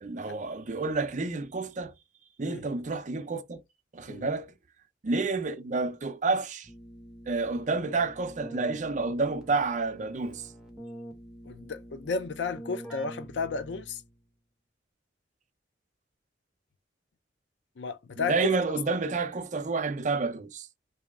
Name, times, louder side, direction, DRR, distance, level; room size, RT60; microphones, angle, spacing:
voice 1, 0.0-1.9 2.4-3.6 3.9-4.5 5.0-6.7 7.3-10.5 18.2-20.7, right 3 dB, 45° right, 0.5 m, -29 dB
Keyboard (musical), 6.6-14.2, equal, 5° right, 1.0 m, -46 dB
voice 2, 11.5-14.0 17.8-18.5, left 4 dB, 75° left, 0.5 m, -33 dB
3.0 x 2.7 x 3.5 m
head